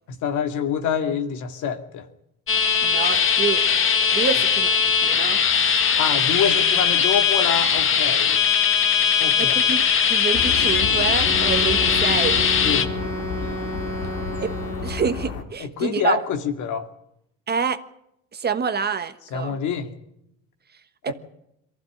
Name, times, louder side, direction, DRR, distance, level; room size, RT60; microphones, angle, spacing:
voice 1, 0.1-2.1 6.0-8.4 9.2-9.6 12.6-12.9 15.6-16.9 19.3-19.9 21.1-21.2, left 7 dB, 60° left, 8 dB, 2.5 m, -26 dB
sound 1, 2.5-12.8, left 7 dB, 40° left, 1.8 m, -20 dB
voice 2, 2.8-3.6 4.1-5.4 9.4-9.8 10.1-12.5 14.4-14.5 14.8-16.2 17.5-17.8 18.3-19.6 21.0-21.1, right 6 dB, 30° right, 10 dB, 1.4 m, -27 dB
sound 2, 10.3-15.4, left 6 dB, 90° left, 3.4 m, -31 dB
Wind instrument woodwind instrument, 11.2-15.3, right 2 dB, 10° left, 3.3 m, -31 dB
23.0 x 15.0 x 9.8 m, 0.80 s
cardioid pair, 110°, 33 cm